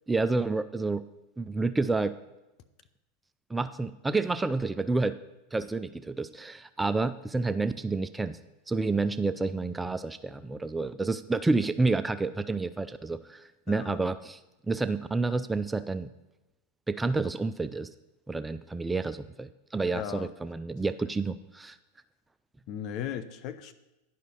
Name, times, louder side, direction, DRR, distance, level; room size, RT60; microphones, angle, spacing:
voice 1, 0.1-1.0 1.4-2.2 3.5-5.2 5.5-8.4 8.7-14.4 14.7-16.1 16.9-17.9 18.3-21.8, right 3 dB, 10° right, 12 dB, 0.3 m, -29 dB
voice 2, 13.7-14.0 19.9-20.3 21.0-21.1 22.7-23.7, left 9 dB, 50° left, 11 dB, 0.7 m, -37 dB
10.5 x 5.0 x 5.4 m, 1.0 s
hypercardioid pair, 95°, 0 cm